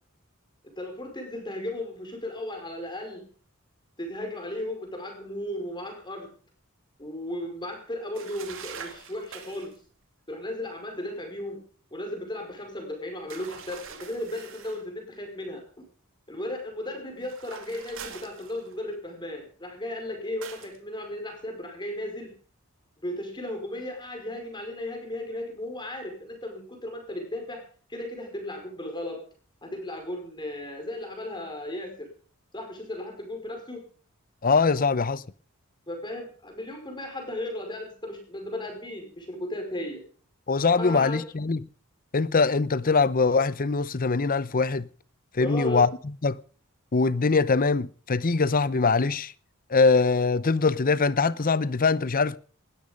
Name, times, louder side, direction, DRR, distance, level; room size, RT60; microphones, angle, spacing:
voice 1, 0.8-3.2 4.0-6.3 7.0-9.7 10.3-11.6 11.9-15.8 16.3-22.3 23.0-27.6 27.9-29.2 29.6-32.1 32.5-33.8 34.7-34.9 35.9-40.0 40.7-41.2 45.4-45.9, left 1 dB, 20° left, 5.2 m, -35 dB
sound 1, 8.2-9.8 13.3-14.9 17.2-18.9 20.4-20.8, right 6 dB, 60° right, 2.5 m, -43 dB
voice 2, 34.4-35.2 40.5-41.6 42.1-44.9 45.3-45.9 46.2-46.4 46.9-49.3 49.7-52.4, left 4 dB, 40° left, 0.7 m, -22 dB
19.5 x 13.0 x 5.2 m
head